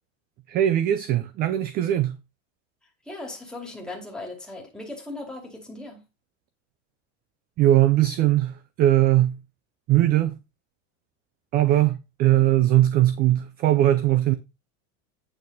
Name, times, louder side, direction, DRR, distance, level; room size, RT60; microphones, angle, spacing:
voice 1, 0.5-2.2 7.6-9.4 9.9-10.4 11.5-14.3, right 13 dB, 25° right, 0.3 m, -20 dB
voice 2, 3.0-6.0, left 2 dB, ahead, 2.3 m, -38 dB
8.7 x 6.4 x 4.0 m
supercardioid pair, 155°, 39 cm